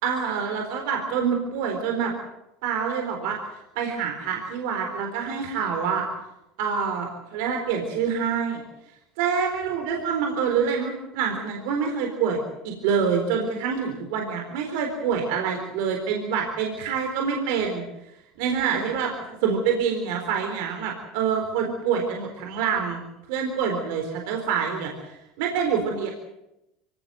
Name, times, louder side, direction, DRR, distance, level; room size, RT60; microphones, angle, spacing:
voice 1, 0.0-2.1 2.6-3.4 3.8-6.1 6.6-8.6 9.2-17.8 18.4-19.1 19.4-23.0 23.3-26.1, right 6 dB, 70° right, 3 dB, 4.1 m, -26 dB
25.0 x 17.5 x 7.8 m, 0.88 s
hypercardioid pair, 85°, 0 cm